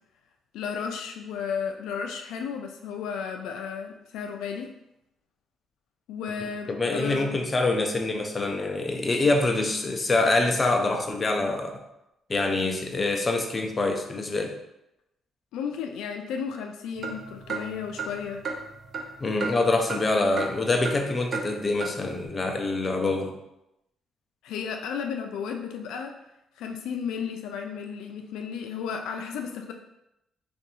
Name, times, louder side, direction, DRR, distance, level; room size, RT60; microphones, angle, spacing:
voice 1, 0.5-4.7 6.1-7.3 15.5-18.4 24.4-26.1 26.6-29.7, left 6 dB, 90° left, 4 dB, 0.3 m, -33 dB
voice 2, 6.7-11.8 12.3-14.6 19.2-23.4, left 2 dB, 30° left, 3 dB, 0.5 m, -25 dB
sound 1, 17.0-20.1 20.4-21.0 21.3-21.5 21.8-21.9, right 4 dB, 50° right, 0.6 m, -34 dB
2.7 x 2.6 x 4.0 m, 0.87 s
cardioid pair, 90°, 0 cm